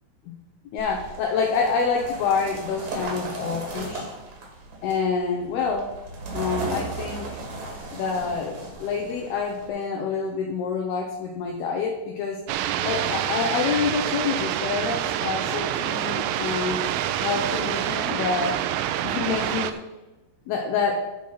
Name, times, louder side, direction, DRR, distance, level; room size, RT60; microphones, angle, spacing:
voice 1, 0.7-4.1 4.8-5.9 6.3-7.4 7.9-12.4 12.8-16.9 17.2-18.6 19.0-19.8 20.5-21.1, left 5 dB, 80° left, 1 dB, 2.3 m, -27 dB
sound 1, 0.8-9.7, right 2 dB, 45° right, 2.7 m, -36 dB
sound 2, 12.5-19.7, right 11 dB, 85° right, 3.0 m, -27 dB
13.0 x 4.7 x 5.7 m, 1.1 s
omnidirectional pair, 5.8 m